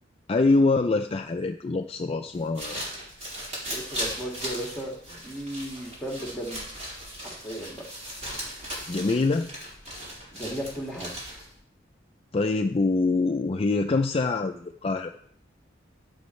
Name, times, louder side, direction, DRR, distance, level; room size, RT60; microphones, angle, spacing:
voice 1, 0.3-2.8 8.9-9.5 12.3-15.1, left 3 dB, 30° left, 5 dB, 0.4 m, -24 dB
sound 1, 2.3-11.6, equal, 40° right, 4.3 m, -37 dB
voice 2, 3.6-6.6 7.2-7.8 10.3-11.1, equal, ahead, -1 dB, 2.0 m, -35 dB
13.0 x 8.0 x 3.2 m, 0.65 s
head